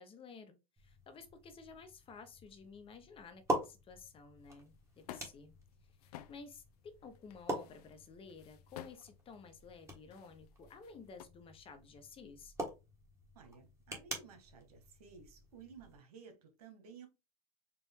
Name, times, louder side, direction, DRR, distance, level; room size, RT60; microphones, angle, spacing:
voice 1, 0.0-5.5 6.0-12.5, left 5 dB, 30° left, 0.8 m, -53 dB
sound 1, 0.8-16.0, right 1 dB, 15° right, 1.4 m, -45 dB
sound 2, 4.4-11.3, left 12 dB, 80° left, 0.5 m, -56 dB
voice 2, 13.3-17.1, right 5 dB, 85° right, 1.4 m, -55 dB
4.6 x 2.4 x 3.5 m
supercardioid pair, 115°, 19 cm